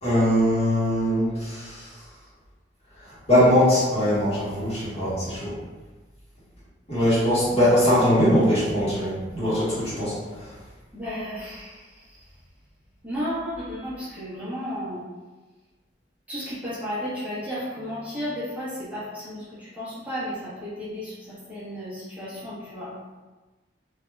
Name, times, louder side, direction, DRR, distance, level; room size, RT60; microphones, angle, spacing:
voice 1, 0.0-1.9 3.3-5.5 6.9-10.5, equal, 35° left, -10 dB, 1.4 m, -21 dB
voice 2, 10.9-11.8 13.0-15.0 16.3-19.4 19.8-22.9, equal, 10° right, -12 dB, 1.0 m, -33 dB
3.3 x 2.8 x 2.2 m, 1.2 s
head